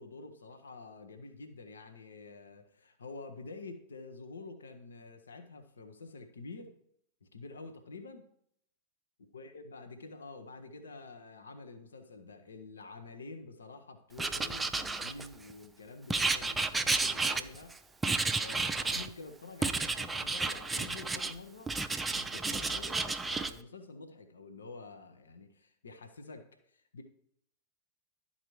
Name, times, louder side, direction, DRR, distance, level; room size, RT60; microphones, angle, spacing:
voice 1, 0.0-6.7 7.2-8.3 9.3-17.7 18.4-21.7 22.1-27.0, left 3 dB, 70° left, 6 dB, 0.8 m, -48 dB
Writing, 14.2-15.5 16.1-17.7 18.0-19.1 19.6-21.3 21.7-23.5, right 3 dB, 10° right, 0.4 m, -32 dB
12.0 x 4.1 x 3.1 m, 0.70 s
figure-of-eight pair, 90°, 0 cm